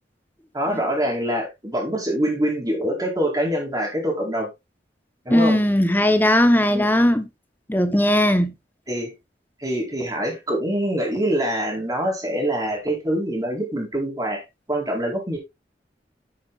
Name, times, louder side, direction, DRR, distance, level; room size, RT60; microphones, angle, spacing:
voice 1, 0.5-4.5 5.2-5.6 6.7-6.8 8.9-9.1 9.6-15.4, equal, 20° right, 4.4 m, -25 dB
voice 2, 5.3-7.3 7.7-8.5, left 1 dB, 10° left, 1.0 m, -18 dB
9.6 x 9.3 x 2.5 m
head